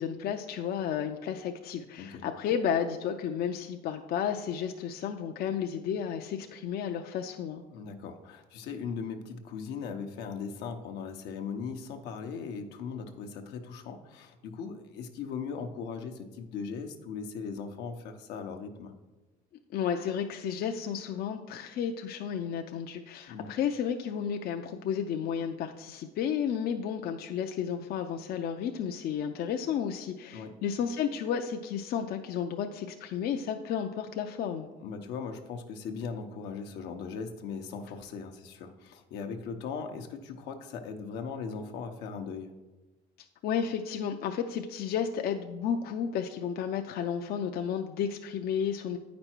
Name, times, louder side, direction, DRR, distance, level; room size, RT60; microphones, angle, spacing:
voice 1, 0.0-7.6 19.7-34.7 43.4-49.0, left 8 dB, 65° left, 5 dB, 0.5 m, -32 dB
voice 2, 7.7-18.9 23.3-23.5 30.3-30.5 34.8-42.5, left 5 dB, 90° left, 5 dB, 0.8 m, -39 dB
8.9 x 5.2 x 4.4 m, 1.1 s
cardioid pair, 110°, 17 cm